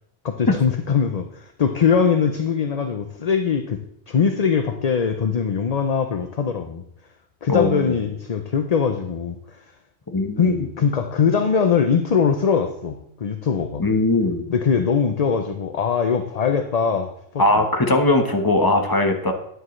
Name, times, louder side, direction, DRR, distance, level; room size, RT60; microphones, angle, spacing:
voice 1, 0.2-3.8 4.1-6.8 7.4-9.6 10.4-13.8 14.5-17.4, left 6 dB, 45° left, 7 dB, 0.7 m, -21 dB
voice 2, 7.5-8.0 10.1-10.7 13.8-14.4 17.4-19.3, left 2 dB, 20° left, 4 dB, 1.2 m, -20 dB
13.0 x 9.8 x 3.2 m, 0.77 s
omnidirectional pair, 1.1 m